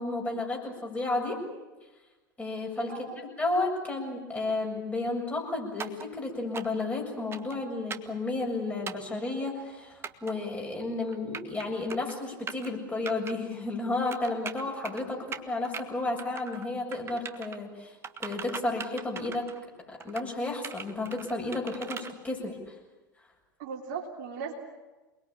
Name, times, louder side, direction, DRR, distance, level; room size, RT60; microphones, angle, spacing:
voice 1, 0.0-1.4 2.4-17.9 18.2-19.5 19.9-22.6, left 2 dB, 15° left, 0 dB, 7.4 m, -32 dB
voice 2, 2.9-3.2 23.6-24.5, right 6 dB, 55° right, 1 dB, 3.4 m, -37 dB
sound 1, 5.8-6.1 6.5-6.8 7.3-7.6 7.9-8.1 8.9-9.1 10.0-10.3 11.1-11.6 11.9-12.1 12.5-12.7 13.1-13.3 14.1-15.0 15.3-15.8 16.2-16.7 16.9-17.6 18.0-19.6 20.0-20.3 20.6-22.1, right 6 dB, 25° right, 1.6 m, -39 dB
28.5 x 21.0 x 8.8 m, 1.2 s
figure-of-eight pair, 80°, 11 cm